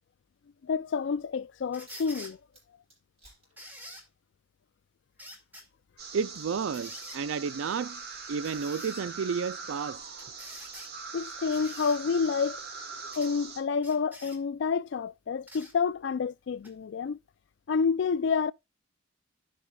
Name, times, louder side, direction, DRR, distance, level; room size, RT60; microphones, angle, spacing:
voice 1, 0.6-2.4 11.1-12.6 13.2-17.2 17.7-18.5, left 5 dB, 60° left, 0.3 m, -29 dB
sound 1, 1.7-2.3 3.6-4.0 5.2-5.7 6.7-7.2 8.4-9.0 10.2-10.9 11.5-12.0 13.1-13.3 13.8-14.4 15.5-15.7 16.6-16.7, equal, 10° right, 2.0 m, -46 dB
sound 2, 1.9-2.2 2.5-4.1 5.2-5.3 5.8-12.5, right 2 dB, 30° right, 6.0 m, -63 dB
sound 3, 6.0-13.6, right 5 dB, 50° right, 1.8 m, -42 dB
voice 2, 6.1-8.0 8.3-10.1, right 6 dB, 75° right, 0.4 m, -32 dB
16.0 x 5.5 x 2.3 m
head